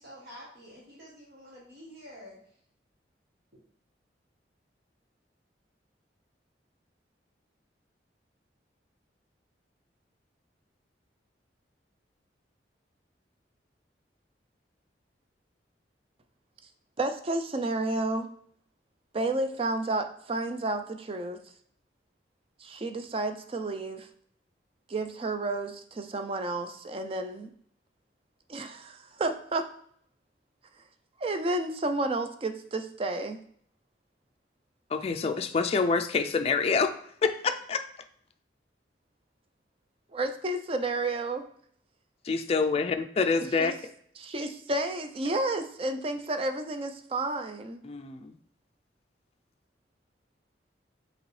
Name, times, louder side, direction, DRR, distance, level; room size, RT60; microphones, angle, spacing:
voice 1, 0.0-2.4, equal, 60° right, -4 dB, 1.1 m, -48 dB
voice 2, 17.0-18.3 19.1-21.4 22.6-24.1 24.9-27.5 28.5-29.6 31.2-33.4 40.1-41.4 43.6-43.7 44.2-47.8, right 2 dB, 30° right, 7 dB, 0.4 m, -31 dB
voice 3, 34.9-36.9 37.2-37.8 42.2-43.7 47.8-48.3, left 4 dB, 35° left, 7 dB, 0.3 m, -26 dB
5.3 x 3.0 x 3.2 m, 0.64 s
head